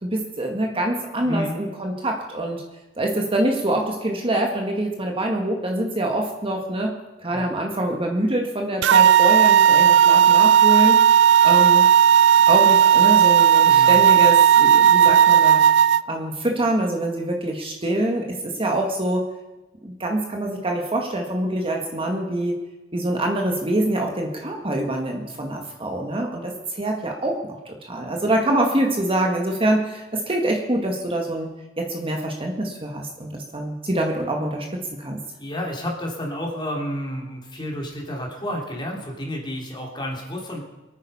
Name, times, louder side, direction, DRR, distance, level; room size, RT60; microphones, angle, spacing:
voice 1, 0.0-2.6 3.0-6.9 7.2-11.0 11.4-11.9 12.5-15.6 16.1-19.2 19.8-22.5 22.9-31.5 31.8-35.2, right 1 dB, 25° right, 1 dB, 1.8 m, -25 dB
voice 2, 1.2-1.6 7.3-7.5 13.6-14.0 33.2-33.4 35.4-40.6, equal, 20° left, -1 dB, 3.3 m, -31 dB
sound 1, 8.8-16.0, right 9 dB, 60° right, 0.4 m, -14 dB
24.5 x 9.2 x 5.6 m, 1.1 s
head